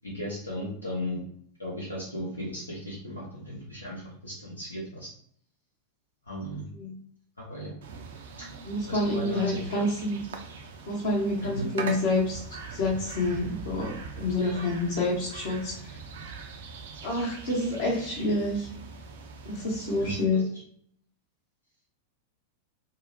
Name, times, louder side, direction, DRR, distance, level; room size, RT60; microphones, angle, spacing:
voice 1, 0.0-1.2 1.6-5.1 6.3-6.7 7.4-7.7 8.4-8.5 8.9-9.8 11.5-11.7 14.4-14.6 20.0-20.4, left 1 dB, 80° left, -5 dB, 0.8 m, -36 dB
sound 1, 7.8-20.2, right 5 dB, 60° right, 0.4 m, -42 dB
voice 2, 8.6-10.2 10.8-12.4 12.7-16.0 17.0-18.7 19.4-20.4, left 2 dB, 55° left, -3 dB, 0.9 m, -28 dB
2.7 x 2.0 x 2.6 m, 0.63 s
figure-of-eight pair, 90°, 0 cm